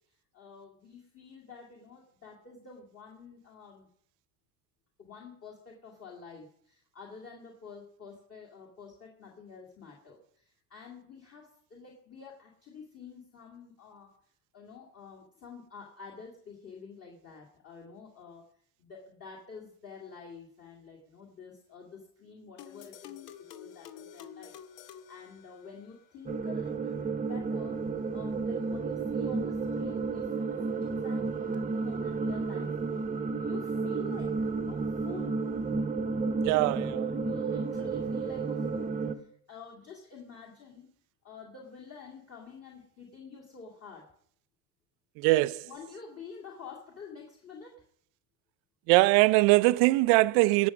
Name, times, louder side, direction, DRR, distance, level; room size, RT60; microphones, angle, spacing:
voice 1, 0.3-3.9 5.0-14.1 14.5-18.5 18.8-23.1 23.5-27.8 28.1-32.8 33.4-35.5 37.2-40.9 41.2-44.1 45.6-47.8, left 5 dB, 30° left, 2.3 m, -49 dB
sound 1, 22.6-26.0, left 10 dB, 85° left, 1.3 m, -49 dB
sound 2, 26.3-39.2, right 4 dB, 15° right, 0.8 m, -32 dB
voice 2, 36.4-37.1 45.2-45.7 48.9-50.7, right 21 dB, 75° right, 0.6 m, -22 dB
18.0 x 6.2 x 6.0 m
cardioid pair, 130°, 46 cm